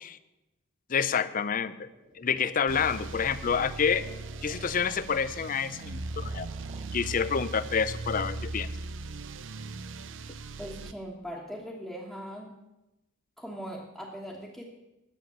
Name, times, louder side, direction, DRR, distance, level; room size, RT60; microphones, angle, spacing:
voice 1, 0.9-1.9 2.2-4.0 4.4-6.5 6.9-8.7, left 6 dB, 40° left, 15 dB, 0.5 m, -28 dB
sound 1, 1.9-8.8, right 1 dB, 45° right, 2.2 m, -54 dB
sound 2, 2.7-10.9, right 3 dB, 65° right, 0.6 m, -39 dB
voice 2, 10.6-12.5 13.4-14.6, equal, ahead, -5 dB, 1.3 m, -40 dB
10.0 x 7.1 x 7.2 m, 0.96 s
head